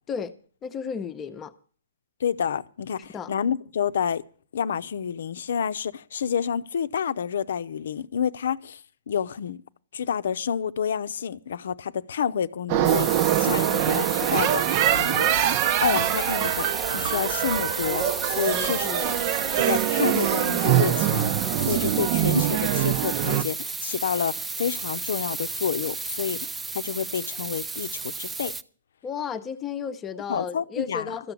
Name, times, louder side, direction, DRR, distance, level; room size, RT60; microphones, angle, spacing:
voice 1, 0.6-1.5 3.1-3.4 18.5-19.2 29.0-31.3, left 6 dB, 20° left, 0.8 m, -33 dB
voice 2, 2.2-4.2 4.5-8.8 9.1-9.6 9.9-15.3 15.8-19.2 19.6-21.3 21.6-28.5 30.3-31.1, left 8 dB, 70° left, 0.7 m, -29 dB
sound 1, 12.7-23.4, right 12 dB, 40° right, 0.9 m, -24 dB
sound 2, 12.8-28.6, right 4 dB, 10° right, 0.6 m, -33 dB
13.5 x 6.9 x 8.5 m
hypercardioid pair, 130°, 0 cm